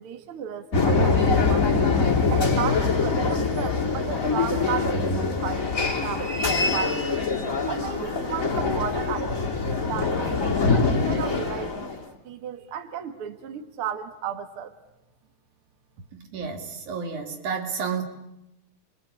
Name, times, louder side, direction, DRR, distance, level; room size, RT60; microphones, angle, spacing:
voice 1, 0.0-1.7 2.3-7.1 7.7-10.4 10.9-12.0 12.2-14.7, right 8 dB, 50° right, 7 dB, 2.2 m, -34 dB
sound 1, 0.7-12.0, left 4 dB, 25° left, 3.1 m, -24 dB
voice 2, 16.1-18.0, right 5 dB, 80° right, 4 dB, 4.1 m, -31 dB
29.5 x 23.5 x 8.6 m, 0.90 s
omnidirectional pair, 3.4 m